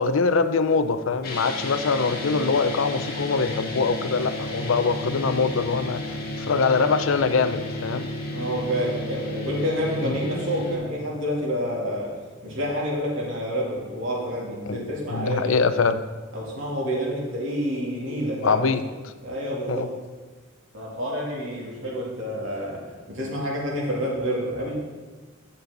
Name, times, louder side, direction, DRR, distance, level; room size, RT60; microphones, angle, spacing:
voice 1, 0.0-8.1 10.0-10.1 14.7-16.0 18.4-18.8 19.7-19.9, left 4 dB, 80° left, 11 dB, 0.6 m, -23 dB
sound 1, 1.2-10.8, left 1 dB, 50° left, 1.6 m, -32 dB
voice 2, 8.0-12.1 12.4-15.6 16.3-18.8 19.2-19.9 20.7-24.7, equal, 75° right, -4 dB, 2.7 m, -28 dB
10.5 x 7.1 x 3.9 m, 1.3 s
head